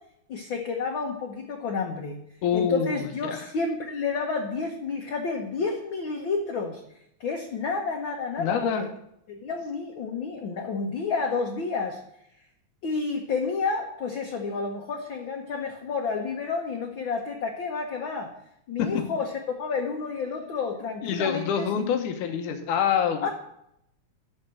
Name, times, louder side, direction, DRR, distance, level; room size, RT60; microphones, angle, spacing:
voice 1, 0.3-2.2 2.5-6.8 7.2-8.9 9.3-12.0 12.8-18.3 18.7-19.3 19.6-22.0 23.2-23.3, left 4 dB, 60° left, 1 dB, 1.3 m, -30 dB
voice 2, 2.4-3.5 8.4-8.9 18.8-19.1 21.0-23.3, left 7 dB, 85° left, 6 dB, 2.6 m, -26 dB
12.5 x 4.4 x 7.7 m, 0.76 s
omnidirectional pair, 3.5 m